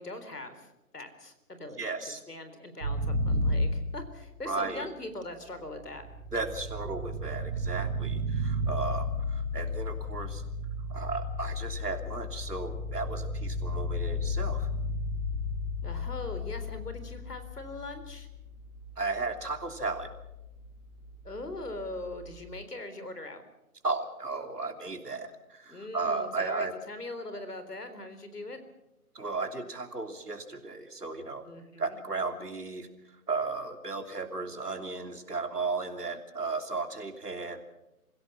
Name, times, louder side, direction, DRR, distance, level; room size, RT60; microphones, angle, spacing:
voice 1, 0.0-6.0 15.8-18.3 21.2-23.4 25.7-28.6 31.4-32.0, left 2 dB, 90° left, 9 dB, 4.0 m, -41 dB
voice 2, 1.8-2.2 4.4-4.9 6.3-10.4 10.9-14.7 19.0-20.1 23.8-26.7 29.1-31.4 31.8-32.9 33.3-37.6, right 3 dB, 90° right, 6 dB, 3.2 m, -35 dB
sound 1, 2.8-4.5 5.6-22.5, left 1 dB, 40° right, 4.1 m, -34 dB
26.5 x 16.5 x 6.1 m, 0.93 s
figure-of-eight pair, 155°, 45 cm